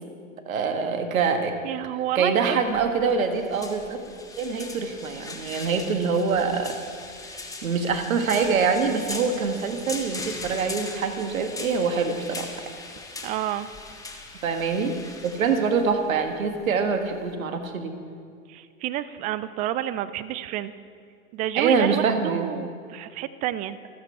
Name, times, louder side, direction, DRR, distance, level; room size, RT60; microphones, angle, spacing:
voice 1, 0.5-1.6 2.2-6.8 7.3-12.5 14.4-15.0 15.2-17.9 21.6-22.5, right 5 dB, 75° right, 6 dB, 1.8 m, -25 dB
voice 2, 1.6-2.9 13.2-13.7 18.5-20.7 21.3-23.8, right 12 dB, 20° right, 15 dB, 0.3 m, -30 dB
sound 1, 2.7-17.3, left 3 dB, 10° left, 1.5 m, -40 dB
26.5 x 8.8 x 4.6 m, 2.2 s
hypercardioid pair, 105°, 41 cm